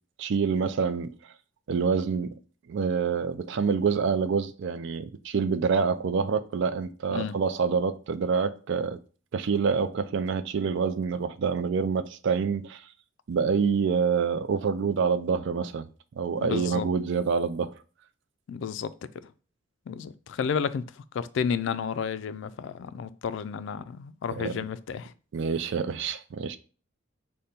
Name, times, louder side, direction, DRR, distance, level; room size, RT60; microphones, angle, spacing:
voice 1, 0.2-1.1 1.7-2.3 2.7-9.0 9.3-12.8 13.3-15.9 16.1-17.7 24.4-24.6 25.3-26.6, right 5 dB, 60° right, 0.4 m, -27 dB
voice 2, 16.4-16.9 18.5-19.3 19.9-25.1, left 6 dB, 65° left, 0.3 m, -32 dB
5.1 x 2.2 x 4.2 m
head